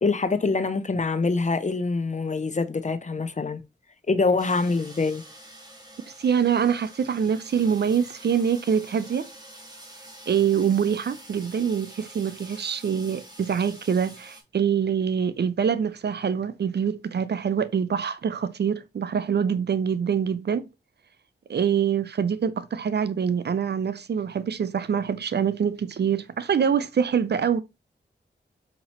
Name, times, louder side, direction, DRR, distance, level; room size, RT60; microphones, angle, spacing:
voice 1, 0.0-3.6 4.1-5.2, left 3 dB, 35° left, 0.7 m, -25 dB
sound 1, 4.4-14.4, right 1 dB, 20° right, 1.8 m, -46 dB
voice 2, 6.2-9.3 10.3-20.7 21.5-27.6, right 7 dB, 60° right, 0.5 m, -25 dB
5.4 x 2.9 x 2.9 m
cardioid pair, 40°, 20 cm